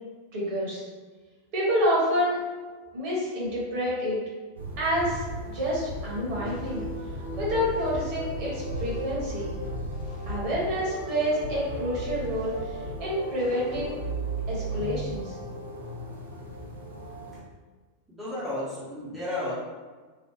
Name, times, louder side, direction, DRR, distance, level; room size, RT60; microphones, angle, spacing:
voice 1, 0.3-0.8 1.5-2.4 2.9-4.2 4.8-5.2 5.5-6.8 7.4-9.5 10.3-14.0 14.5-15.4, equal, 45° right, -7 dB, 1.4 m, -28 dB
sound 1, 4.6-17.4, equal, 70° right, 0.6 m, -39 dB
sound 2, 5.9-16.0, right 1 dB, 30° left, 0.9 m, -36 dB
voice 2, 18.1-19.5, left 1 dB, 10° right, -10 dB, 0.9 m, -33 dB
3.1 x 2.5 x 2.9 m, 1.4 s
figure-of-eight pair, 90°, 0 cm